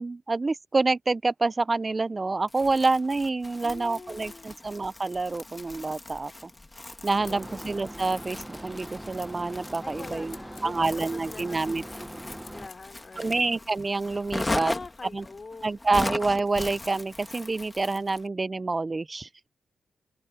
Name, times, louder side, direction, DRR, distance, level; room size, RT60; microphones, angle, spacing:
voice 1, 0.0-6.3 7.0-10.4 10.6-11.8 13.2-14.7 15.1-15.2 15.6-19.5, right 3 dB, 30° right, 0.4 m, -27 dB
Crumpling crinkling, 2.5-18.3, left 2 dB, 20° left, 2.2 m, -39 dB
voice 2, 3.6-4.6 7.3-7.7 9.8-13.5 14.5-15.8, left 4 dB, 40° left, 4.0 m, -44 dB
sound 1, 5.4-5.6 7.2-7.4 8.4-8.6 9.2-9.3 10.2-10.7 12.4-12.8, left 6 dB, 65° left, 5.1 m, -50 dB
sound 2, 7.2-12.7, right 1 dB, 10° right, 1.1 m, -41 dB
cardioid pair, 70°, 0 cm